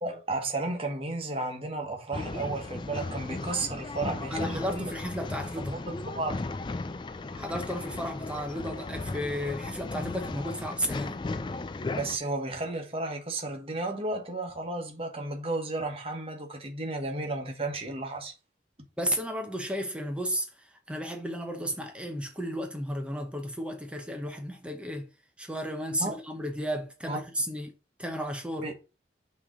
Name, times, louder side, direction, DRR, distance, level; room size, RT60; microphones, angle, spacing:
voice 1, 0.0-4.9 5.7-6.4 11.9-18.3 26.0-26.1 27.1-27.2 28.6-28.7, right 2 dB, 35° right, 1.2 m, -33 dB
Male speech man speaking / Chatter / Rattle, 2.1-12.2, left 3 dB, 25° left, 0.4 m, -36 dB
voice 2, 4.3-5.8 7.3-11.2 19.0-25.1 25.4-27.7 28.0-28.7, equal, 5° right, 0.8 m, -33 dB
6.2 x 3.2 x 4.9 m
head